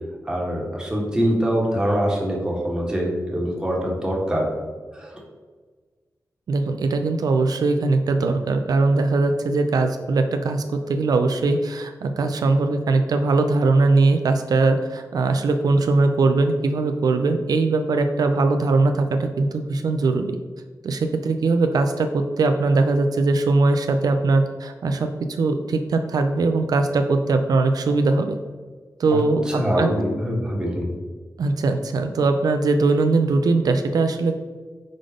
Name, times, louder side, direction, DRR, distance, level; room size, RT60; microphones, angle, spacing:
voice 1, 0.2-4.5 4.9-5.1 29.1-29.2 29.5-30.8, equal, 10° right, -3 dB, 1.5 m, -24 dB
voice 2, 6.5-20.4 20.8-28.3 29.0-29.9 31.4-34.4, right 3 dB, 85° right, 7 dB, 0.4 m, -20 dB
5.1 x 3.8 x 5.0 m, 1.4 s
wide cardioid pair, 115°, 6 cm